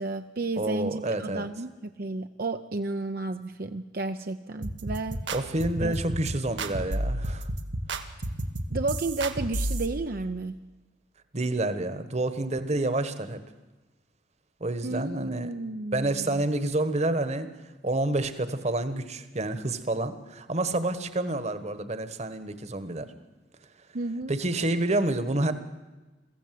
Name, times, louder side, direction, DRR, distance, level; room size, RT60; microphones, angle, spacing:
voice 1, 0.0-5.2 5.8-5.9 8.7-10.6 14.8-16.4 23.9-24.3, right 2 dB, 55° right, 7 dB, 0.7 m, -32 dB
voice 2, 0.6-1.4 5.3-7.5 11.3-13.4 14.6-15.5 15.9-17.5 17.8-23.1 24.3-25.5, right 2 dB, 40° right, 12 dB, 1.4 m, -28 dB
sound 1, 4.6-9.9, right 1 dB, 85° right, 1.5 m, -31 dB
23.0 x 15.0 x 7.6 m, 1.2 s
head